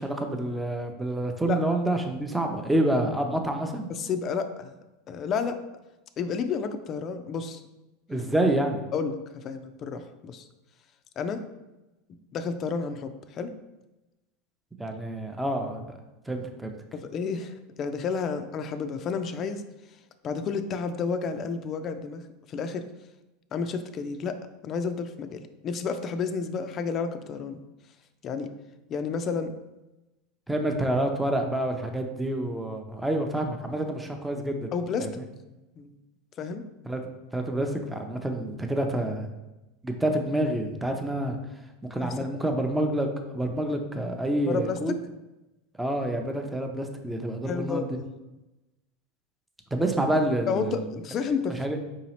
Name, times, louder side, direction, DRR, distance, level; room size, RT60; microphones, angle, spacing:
voice 1, 0.0-3.9 8.1-8.8 14.8-15.9 16.3-16.7 30.5-34.7 35.0-35.3 36.9-37.0 37.3-39.3 39.8-41.4 41.8-43.1 43.3-44.9 45.8-48.0 49.7-50.9 51.5-51.8, right 1 dB, 5° right, 4 dB, 0.6 m, -28 dB
voice 2, 3.9-4.8 5.1-5.6 6.2-7.6 8.9-10.4 11.2-11.4 12.3-13.5 16.9-19.6 20.2-22.2 22.5-22.9 23.5-27.6 28.2-28.5 28.9-29.5 34.7-35.1 35.8-35.9 36.4-36.6 42.0-42.1 44.4-44.8 47.5-48.1 50.5-51.8, left 5 dB, 40° left, 9 dB, 0.4 m, -31 dB
4.7 x 2.9 x 3.0 m, 1.0 s
hypercardioid pair, 95°, 0 cm